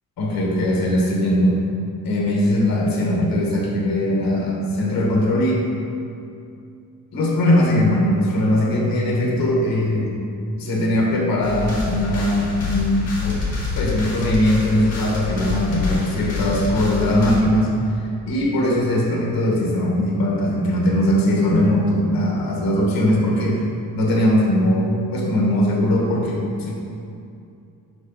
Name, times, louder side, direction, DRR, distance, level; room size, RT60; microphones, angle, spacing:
voice 1, 0.2-1.6 2.0-5.7 7.1-10.2 10.6-13.4 13.8-17.7 18.0-23.6 23.9-26.7, left 1 dB, 75° left, -2 dB, 1.5 m, -20 dB
sound 1, 11.4-17.4, left 4 dB, 45° left, 1.6 m, -27 dB
10.5 x 3.9 x 4.0 m, 2.6 s
wide cardioid pair, 170°, 35 cm